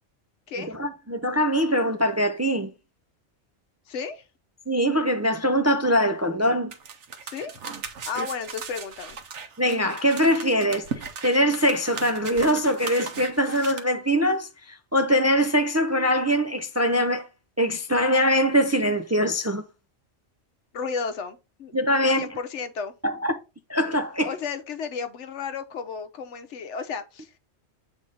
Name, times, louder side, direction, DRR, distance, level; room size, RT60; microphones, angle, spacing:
voice 1, 0.6-2.7 4.7-6.7 8.2-8.3 9.6-10.9 11.2-17.3 17.6-19.6 21.7-22.3 23.0-23.4 23.7-24.3, equal, 25° right, 0.4 m, -23 dB
voice 2, 3.9-4.2 7.2-7.6 8.1-9.2 20.7-22.9 24.2-27.4, left 5 dB, 85° left, 1.1 m, -33 dB
sound 1, 6.7-13.8, right 5 dB, 85° right, 1.3 m, -38 dB
7.7 x 3.5 x 4.0 m
omnidirectional pair, 1.2 m